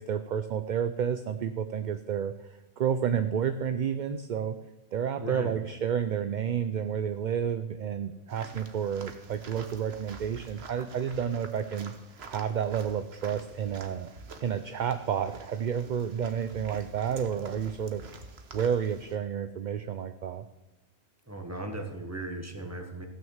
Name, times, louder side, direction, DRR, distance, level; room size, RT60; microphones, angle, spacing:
voice 1, 0.0-4.6 4.9-11.9 12.3-14.1 14.4-18.1 18.5-20.5, right 8 dB, 55° right, 10 dB, 0.6 m, -30 dB
voice 2, 5.2-5.6 21.3-23.1, right 1 dB, 15° right, 4 dB, 1.6 m, -37 dB
sound 1, 8.3-19.2, right 3 dB, 80° right, 1.4 m, -48 dB
15.5 x 6.3 x 7.3 m, 1.0 s
omnidirectional pair, 1.1 m